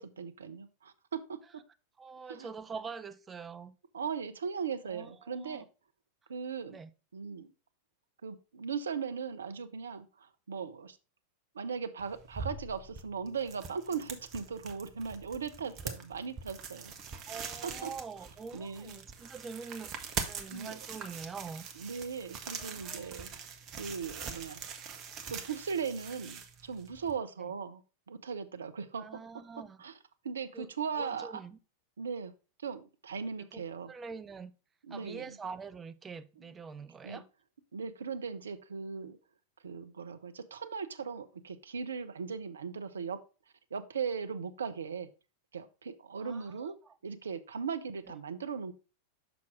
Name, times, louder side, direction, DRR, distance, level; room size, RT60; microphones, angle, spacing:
voice 1, 0.0-1.4 2.3-2.5 3.9-5.6 6.3-6.8 7.1-7.5 8.2-11.0 11.5-16.9 17.6-17.9 18.5-19.0 20.5-20.8 21.8-23.3 23.8-24.6 25.3-27.8 28.1-29.2 29.8-30.0 30.2-31.4 32.0-32.3 32.6-33.9 34.8-35.4 37.0-37.2 37.7-39.2 39.6-43.2 43.7-45.1 45.5-46.7 47.0-48.7, right 6 dB, 70° right, 0.5 m, -38 dB
voice 2, 2.0-3.8 4.8-5.6 6.7-6.9 17.3-19.9 20.2-21.7 22.6-23.1 27.4-27.5 29.0-29.8 30.5-30.7 31.0-31.6 33.5-34.5 34.9-37.3 46.2-46.9, right 5 dB, 20° right, 0.5 m, -45 dB
sound 1, 12.0-27.1, right 6 dB, 35° right, 0.9 m, -43 dB
6.0 x 5.9 x 3.6 m
figure-of-eight pair, 90°, 0 cm